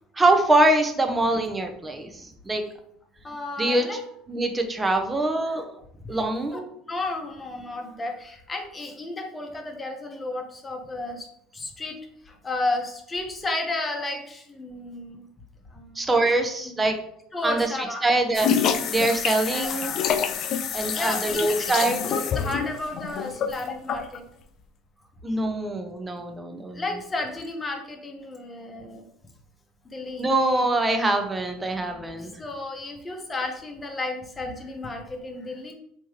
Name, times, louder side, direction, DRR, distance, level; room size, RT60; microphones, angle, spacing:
voice 1, 0.1-2.6 3.6-4.0 4.3-5.7 6.1-6.7 15.9-17.0 17.4-20.0 20.7-22.1 25.2-27.0 30.2-32.3, right 2 dB, 20° right, 5 dB, 0.7 m, -24 dB
voice 2, 3.2-4.0 6.0-6.6 6.9-11.3 11.5-12.0 12.2-15.2 15.7-16.1 16.6-16.8 17.3-18.1 19.5-20.1 20.9-24.2 26.7-29.1 29.8-30.3 32.2-35.7, left 2 dB, 25° left, 3 dB, 0.9 m, -33 dB
sound 1, 18.3-24.2, left 7 dB, 55° left, 0.3 m, -27 dB
3.4 x 2.9 x 3.1 m, 0.72 s
hypercardioid pair, 75°, 0 cm